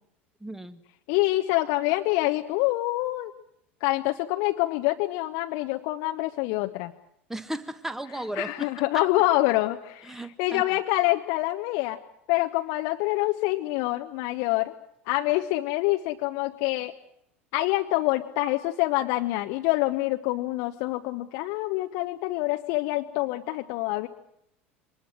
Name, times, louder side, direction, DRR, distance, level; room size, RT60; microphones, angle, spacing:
voice 1, 0.4-0.8 7.3-9.0 10.0-10.7, right 1 dB, 5° right, 12 dB, 1.7 m, -35 dB
voice 2, 1.1-3.3 3.8-6.9 8.4-12.0 12.3-14.7 15.1-16.9 17.5-24.1, left 18 dB, 55° left, 5 dB, 1.0 m, -26 dB
24.0 x 20.0 x 7.6 m, 0.74 s
figure-of-eight pair, 75°, 6 cm